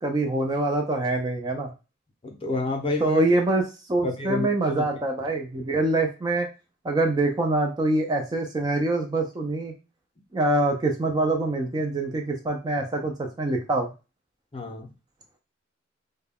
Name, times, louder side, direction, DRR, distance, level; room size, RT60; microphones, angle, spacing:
voice 1, 0.0-1.7 3.0-3.6 3.9-6.5 6.8-9.7 10.3-13.9, right 2 dB, 20° right, 2 dB, 0.3 m, -25 dB
voice 2, 2.2-3.2 4.0-4.8 14.5-14.9, left 2 dB, 30° left, 3 dB, 0.6 m, -29 dB
2.2 x 2.1 x 3.4 m, 0.29 s
head